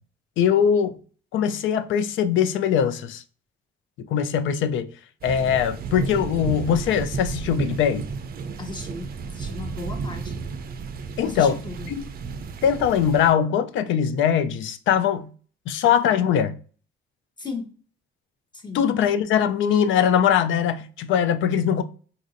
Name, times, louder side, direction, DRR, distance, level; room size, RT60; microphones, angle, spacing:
voice 1, 0.4-1.0 1.3-3.2 4.1-4.9 5.2-8.0 11.2-11.6 11.9-12.0 12.6-15.3 15.7-16.6 18.7-21.8, left 8 dB, 75° left, 0.4 m, -21 dB
sound 1, 5.2-13.3, right 5 dB, 50° right, 0.4 m, -33 dB
voice 2, 8.6-10.3 11.2-11.9 17.4-17.7 18.5-18.9, left 3 dB, 20° left, 0.9 m, -36 dB
4.0 x 2.4 x 2.6 m
cardioid pair, 90°, 20 cm